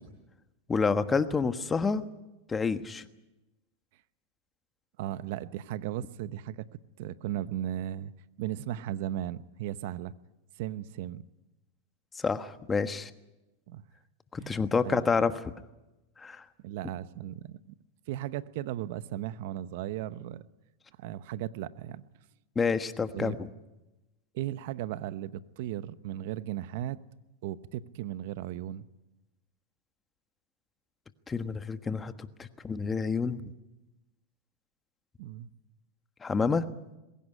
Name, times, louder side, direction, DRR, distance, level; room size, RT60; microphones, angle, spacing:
voice 1, 0.7-2.0 2.5-3.0 12.1-13.1 14.3-15.3 16.2-16.4 22.5-23.5 31.3-32.1 32.4-33.5 36.2-36.7, left 5 dB, 20° left, 10 dB, 1.3 m, -28 dB
voice 2, 5.0-6.7 7.0-8.1 8.4-10.1 10.6-11.2 13.7-13.8 14.4-14.6 14.8-15.0 16.6-17.7 18.1-20.4 21.0-22.0 23.1-23.5 24.3-27.0 27.4-28.8 35.2-35.5, right 12 dB, 65° right, 15 dB, 0.9 m, -36 dB
21.0 x 17.0 x 9.9 m, 1.0 s
hypercardioid pair, 115°, 0 cm